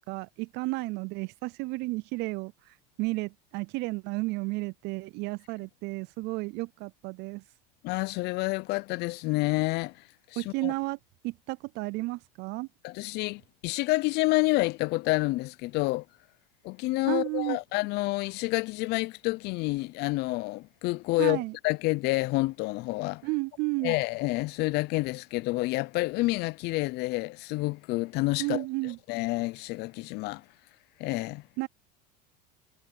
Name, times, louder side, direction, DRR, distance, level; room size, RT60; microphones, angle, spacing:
voice 1, 0.1-2.5 3.0-7.4 10.4-11.0 11.2-12.7 17.1-17.6 21.2-21.6 23.2-24.0 28.4-29.0 31.6-31.7, right 24 dB, 55° right, 0.4 m, -32 dB
voice 2, 7.8-9.9 10.3-10.7 12.8-16.0 16.6-23.2 23.8-28.6 29.1-30.4 31.0-31.4, left 21 dB, 50° left, 0.5 m, -28 dB
supercardioid pair, 115°, 21 cm